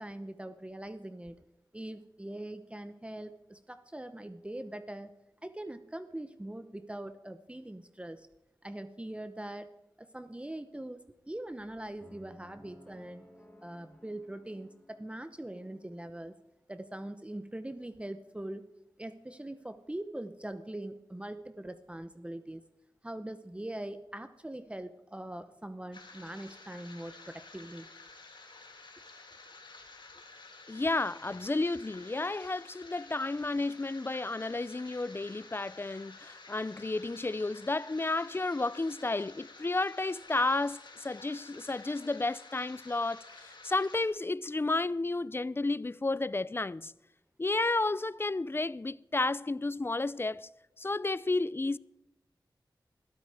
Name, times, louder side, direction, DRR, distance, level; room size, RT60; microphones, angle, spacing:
voice 1, 0.0-1.4 1.7-5.1 5.4-8.3 8.6-9.7 10.0-13.3 13.6-16.3 16.7-18.7 19.0-22.6 23.0-27.9, right 1 dB, 15° right, 0.8 m, -42 dB
sound 1, 12.0-16.1, equal, 15° left, 4.3 m, -58 dB
sound 2, 25.9-44.0, left 3 dB, 85° left, 4.2 m, -52 dB
voice 2, 30.7-46.9 47.4-50.5 50.8-51.8, left 2 dB, 30° left, 0.4 m, -32 dB
21.0 x 13.0 x 4.8 m
wide cardioid pair, 75°, 8 cm